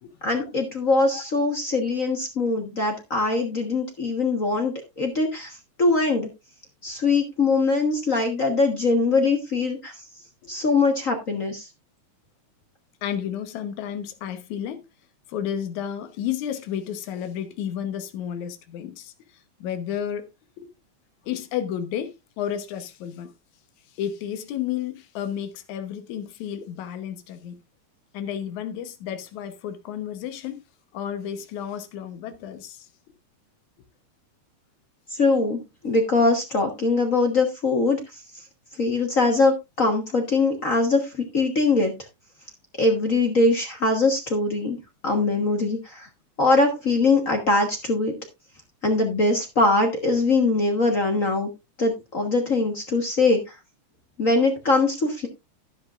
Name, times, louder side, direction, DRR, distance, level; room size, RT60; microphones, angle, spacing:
voice 1, 0.2-6.3 6.8-10.0 10.5-11.7 35.1-38.4 38.8-41.9 42.8-46.1 46.4-48.2 48.8-51.5 51.8-53.6 54.2-55.3, left 3 dB, 45° left, 1.0 m, -22 dB
voice 2, 13.0-14.9 15.3-20.2 20.6-20.7 21.3-23.3 23.9-27.6 28.1-30.6 30.9-32.9, left 9 dB, 80° left, 2.4 m, -32 dB
11.5 x 10.5 x 2.4 m
omnidirectional pair, 3.3 m